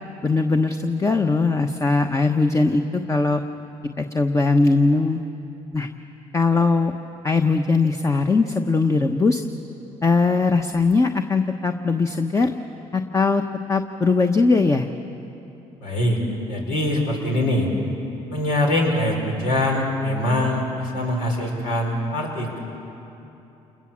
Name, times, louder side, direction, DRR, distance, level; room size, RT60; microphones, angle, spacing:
voice 1, 0.2-3.4 4.0-5.2 5.7-5.9 6.3-6.9 7.2-9.4 10.0-12.5 12.9-13.4 13.7-14.9, left 3 dB, 20° left, 6 dB, 1.1 m, -20 dB
voice 2, 15.8-16.2 16.5-17.7 18.3-22.6, left 1 dB, 85° left, 0 dB, 5.7 m, -23 dB
28.5 x 21.0 x 7.5 m, 2.9 s
supercardioid pair, 80°, 14 cm